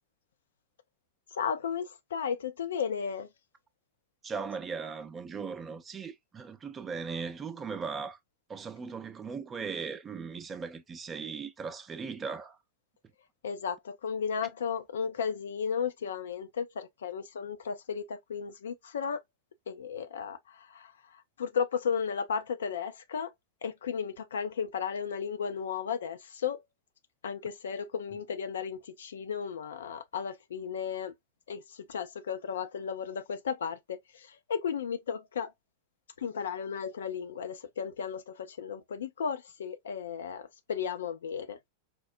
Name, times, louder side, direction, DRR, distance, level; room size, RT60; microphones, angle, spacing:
voice 1, 1.3-3.3 13.4-19.2 19.7-23.3 23.6-26.6 27.2-31.1 31.5-35.5 36.2-41.6, left 7 dB, 65° left, 0.5 m, -34 dB
voice 2, 4.2-8.2 8.5-12.6, right 5 dB, 20° right, 0.6 m, -38 dB
4.4 x 2.1 x 2.5 m
figure-of-eight pair, 90°, 0 cm